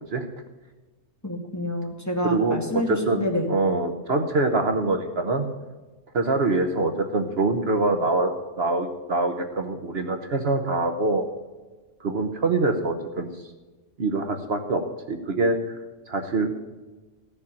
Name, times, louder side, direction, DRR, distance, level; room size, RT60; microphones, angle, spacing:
voice 1, 1.2-3.5, left 1 dB, 15° left, 0 dB, 2.1 m, -28 dB
voice 2, 2.2-5.5 6.1-11.2 12.0-13.3 14.0-15.8 16.1-16.5, right 2 dB, 55° right, 6 dB, 1.2 m, -24 dB
15.5 x 6.8 x 8.6 m, 1.2 s
omnidirectional pair, 1.3 m